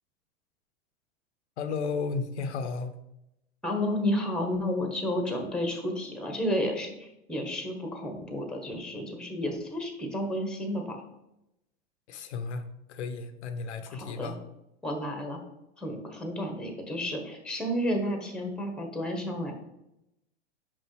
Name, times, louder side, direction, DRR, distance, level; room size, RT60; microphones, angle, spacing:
voice 1, 1.6-2.9 12.1-14.4, left 4 dB, 80° left, 9 dB, 0.8 m, -34 dB
voice 2, 3.6-11.0 13.9-14.3 14.8-15.4 15.8-19.5, left 1 dB, ahead, 3 dB, 1.2 m, -31 dB
5.6 x 5.3 x 3.2 m, 0.86 s
hypercardioid pair, 105°, 34 cm